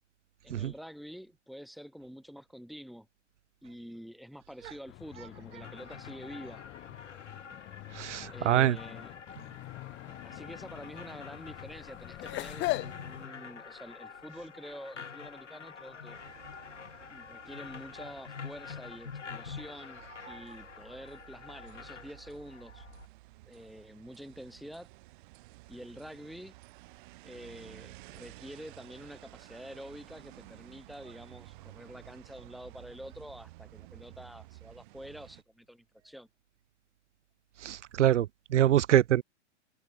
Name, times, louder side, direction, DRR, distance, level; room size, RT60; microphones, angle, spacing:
voice 1, 0.4-3.1 3.6-6.6 8.3-9.2 10.1-16.2 17.1-22.9 23.4-24.9 25.7-26.5 27.2-36.3, equal, ahead, 4.4 m, -47 dB
sound 1, 4.9-13.3, left 20 dB, 30° left, 3.9 m, -41 dB
sound 2, 5.6-23.1, left 6 dB, 80° left, 4.6 m, -47 dB
voice 2, 7.9-8.8 20.3-20.4 37.6-39.2, right 11 dB, 80° right, 0.5 m, -25 dB
sound 3, 16.1-35.4, right 20 dB, 45° right, 3.0 m, -53 dB
hypercardioid pair, 120°, 35 cm